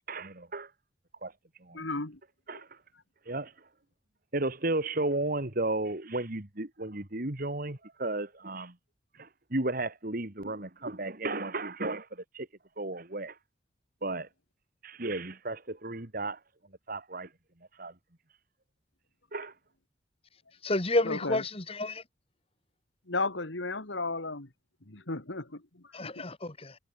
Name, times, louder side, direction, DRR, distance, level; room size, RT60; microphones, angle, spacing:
voice 1, 0.1-0.7 1.2-1.3 1.6-1.8 2.5-2.7 3.3-3.5 4.3-8.8 9.2-12.5 12.8-13.4 14.0-14.3 14.8-16.4 16.9-17.3 17.8-17.9 19.3-19.5, right 2 dB, 50° right, 2.2 m, -33 dB
voice 2, 1.7-2.2 2.5-2.6 21.0-21.4 23.1-24.5 24.9-26.2, left 3 dB, 75° left, 2.6 m, -34 dB
voice 3, 20.6-22.0 25.9-26.8, left 2 dB, 30° left, 2.0 m, -30 dB
head